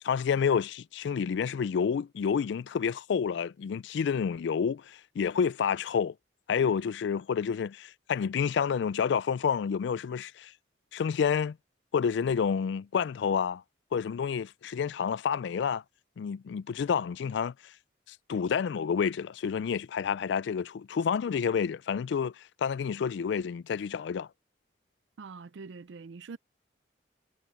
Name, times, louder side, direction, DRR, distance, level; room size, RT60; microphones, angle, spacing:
voice 1, 0.0-6.1 6.5-10.5 10.9-11.6 11.9-13.6 13.9-15.8 16.2-17.7 18.1-24.3, left 6 dB, 70° left, 0.3 m, -29 dB
voice 2, 25.2-26.4, right 4 dB, 75° right, 0.4 m, -44 dB
head